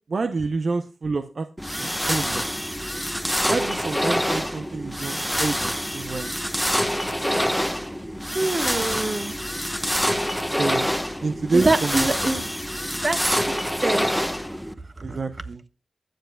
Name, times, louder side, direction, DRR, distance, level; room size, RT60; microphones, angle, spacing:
voice 1, 0.1-1.5 1.8-2.4 3.5-6.3 10.6-10.9 11.2-12.1 15.0-15.6, right 3 dB, 65° right, 9 dB, 0.6 m, -28 dB
sound 1, 1.6-14.7, equal, ahead, 1.1 m, -26 dB
voice 2, 8.3-9.4 11.5-12.4 12.9-13.5 13.8-14.1 15.0-15.2, right 2 dB, 40° right, 8 dB, 1.3 m, -24 dB
23.0 x 7.8 x 2.2 m, 0.30 s
cardioid pair, 55°, 0 cm